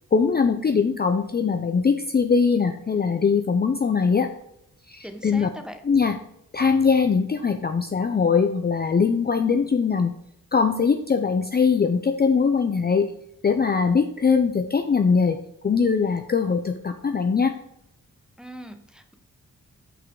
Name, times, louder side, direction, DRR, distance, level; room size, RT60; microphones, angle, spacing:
voice 1, 0.1-4.3 4.9-5.5 5.8-6.2 6.5-10.1 10.5-13.1 13.4-17.6, left 5 dB, 30° left, 6 dB, 0.5 m, -21 dB
voice 2, 5.0-5.8 18.4-19.1, equal, ahead, 6 dB, 0.8 m, -40 dB
6.0 x 5.7 x 3.7 m, 0.81 s
cardioid pair, 80°, 33 cm